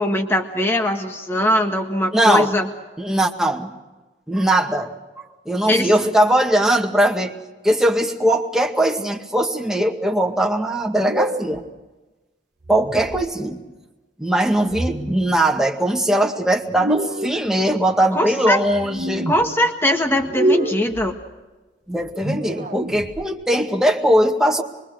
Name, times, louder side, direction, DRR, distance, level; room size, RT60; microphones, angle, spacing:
voice 1, 0.0-2.7 5.7-5.9 18.1-18.6 19.3-21.2, left 1 dB, 15° left, 3 dB, 1.7 m, -21 dB
voice 2, 2.1-2.6 3.0-3.7 4.3-4.9 5.5-7.4 7.6-11.6 12.7-13.6 14.2-19.3 21.9-24.6, right 1 dB, 5° right, 0 dB, 2.0 m, -20 dB
sound 1, 11.0-11.6 12.6-13.3 14.6-15.3 16.7-17.4 18.7-19.4 20.2-21.0 22.0-23.2, right 1 dB, 50° right, 1.8 m, -26 dB
24.5 x 23.0 x 6.6 m, 1.1 s
head